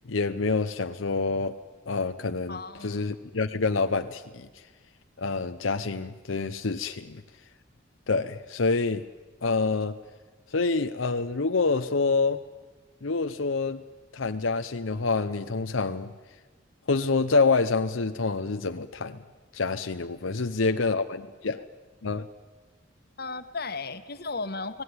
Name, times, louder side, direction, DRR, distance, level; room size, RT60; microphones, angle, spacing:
voice 1, 0.1-1.5 1.9-4.6 5.2-7.2 8.1-9.0 9.4-10.0 10.5-12.4 13.0-13.8 14.1-16.1 16.9-19.2 19.5-21.6 22.0-22.3, left 4 dB, 85° left, 8 dB, 0.8 m, -27 dB
voice 2, 2.5-3.0 23.2-24.8, left 3 dB, 50° left, 10 dB, 1.5 m, -35 dB
30.0 x 19.0 x 9.6 m, 1.3 s
head